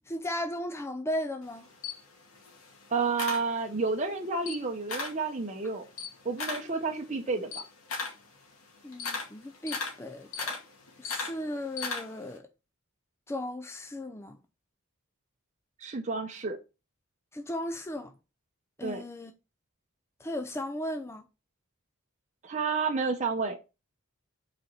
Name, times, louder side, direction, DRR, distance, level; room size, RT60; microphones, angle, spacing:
voice 1, 0.1-1.6 8.8-10.6 11.0-12.5 13.3-14.4 17.3-18.1 18.8-19.3 20.2-21.2, left 1 dB, 10° left, 0.5 m, -36 dB
Camera, 1.4-4.0 4.3-5.3 5.6-12.3, left 4 dB, 85° left, 2.0 m, -37 dB
voice 2, 2.9-5.8 6.2-7.6 15.8-16.6 18.8-19.0 22.4-23.6, right 4 dB, 35° right, 0.8 m, -30 dB
5.4 x 4.3 x 5.4 m
head